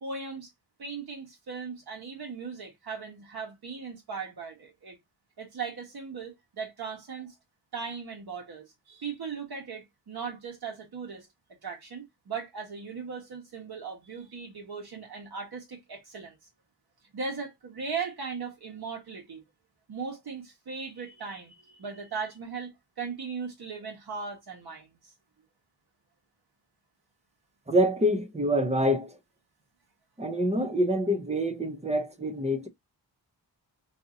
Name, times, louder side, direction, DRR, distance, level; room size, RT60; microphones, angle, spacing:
voice 1, 0.0-0.5 0.8-5.0 5.4-7.3 7.7-11.3 11.6-16.4 17.1-19.4 19.9-24.9, right 5 dB, 60° right, 1.2 m, -38 dB
voice 2, 27.7-29.2 30.2-32.7, equal, 15° right, 0.5 m, -26 dB
2.7 x 2.7 x 3.7 m
wide cardioid pair, 170°, 43 cm